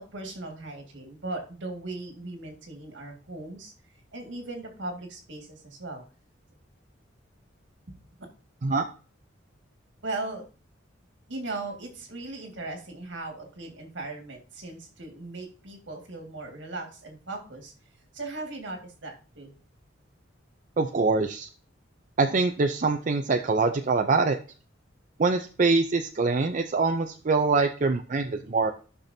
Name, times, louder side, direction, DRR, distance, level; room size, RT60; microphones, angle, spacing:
voice 1, 0.1-3.7 4.1-6.0 7.9-8.0 10.0-10.4 11.3-17.7 18.1-19.5, right 2 dB, 75° right, 3 dB, 2.0 m, -38 dB
voice 2, 20.8-21.5 22.2-24.4 25.2-28.7, right 3 dB, 45° right, 5 dB, 0.5 m, -24 dB
12.0 x 5.9 x 2.7 m, 0.37 s
head